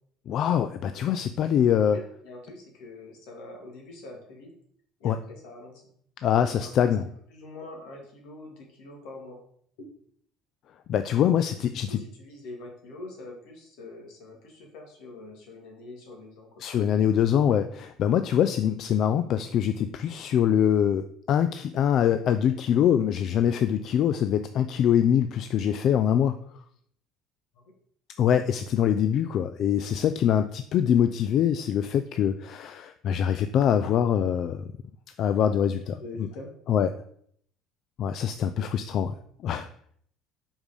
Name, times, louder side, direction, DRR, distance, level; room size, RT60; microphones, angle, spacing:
voice 1, 0.3-2.0 5.0-5.2 6.2-7.1 10.9-12.0 16.6-26.4 28.2-34.7 35.2-36.0 36.7-36.9 38.0-39.1 39.4-39.7, left 9 dB, 50° left, 10 dB, 0.4 m, -24 dB
voice 2, 1.8-4.5 5.0-5.9 6.6-6.9 7.3-9.4 9.8-9.9 11.9-16.6 27.5-27.6 36.0-36.5, left 2 dB, 80° left, 0 dB, 2.4 m, -44 dB
5.4 x 4.9 x 5.1 m, 0.65 s
cardioid pair, 120°, 0 cm